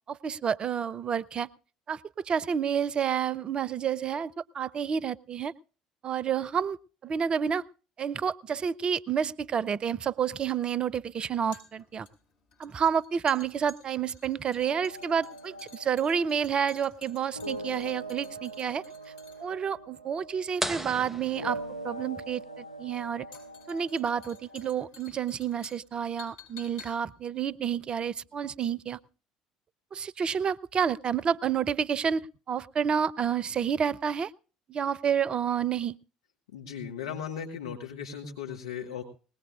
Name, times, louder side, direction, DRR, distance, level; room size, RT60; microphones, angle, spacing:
voice 1, 0.1-1.5 1.9-5.5 6.0-6.8 7.0-7.6 8.0-12.1 12.6-18.8 19.4-21.6 21.8-23.3 23.7-29.0 29.9-34.3 34.7-36.0, right 7 dB, 35° right, 23 dB, 0.6 m, -29 dB
sound 1, 9.4-28.6 28.9-29.0, left 5 dB, 55° left, 7.3 m, -54 dB
sound 2, 14.6-24.7, right 2 dB, 90° right, 0.6 m, -42 dB
sound 3, 20.6-22.3, right 1 dB, 10° right, 0.8 m, -36 dB
voice 2, 36.5-39.0, left 7 dB, 70° left, 3 dB, 1.7 m, -37 dB
20.5 x 19.0 x 2.4 m, 0.37 s
figure-of-eight pair, 60°, 3 cm